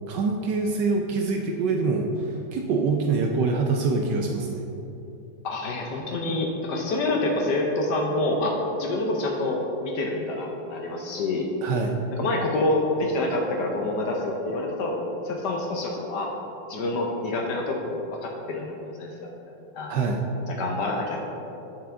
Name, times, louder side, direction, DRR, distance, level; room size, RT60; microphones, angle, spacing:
voice 1, 0.1-4.7 11.6-12.0 19.9-20.2, right 4 dB, 70° right, 2 dB, 1.1 m, -25 dB
voice 2, 5.4-8.5 8.8-11.5 12.2-16.3 16.7-19.3 19.7-19.9 20.5-21.2, left 2 dB, 65° left, 1 dB, 1.2 m, -27 dB
8.3 x 6.0 x 3.6 m, 2.9 s
omnidirectional pair, 2.2 m